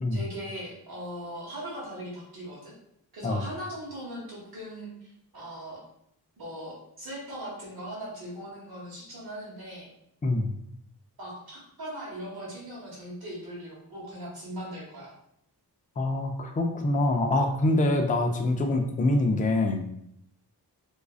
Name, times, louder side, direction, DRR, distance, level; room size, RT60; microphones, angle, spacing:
voice 1, 0.1-2.7 3.1-5.8 6.4-9.9 11.2-15.1, equal, 65° right, -5 dB, 1.0 m, -39 dB
voice 2, 16.0-19.8, left 2 dB, 20° left, 4 dB, 0.3 m, -25 dB
2.4 x 2.3 x 2.3 m, 0.74 s
wide cardioid pair, 50°, 39 cm